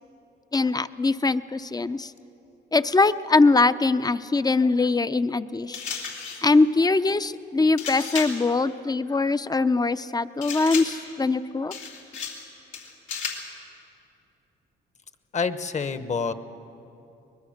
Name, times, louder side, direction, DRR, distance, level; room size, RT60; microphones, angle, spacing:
voice 1, 0.5-2.1 2.7-5.8 6.4-11.7, left 3 dB, 20° left, 13 dB, 0.6 m, -22 dB
sound 1, 5.7-6.5 7.8-8.5 10.4-11.1 11.7-12.5 12.7-13.5, left 6 dB, 85° left, 3.4 m, -34 dB
voice 2, 15.3-16.3, left 5 dB, 35° left, 11 dB, 1.1 m, -27 dB
23.5 x 20.5 x 6.6 m, 2.8 s
cardioid pair, 90°, 20 cm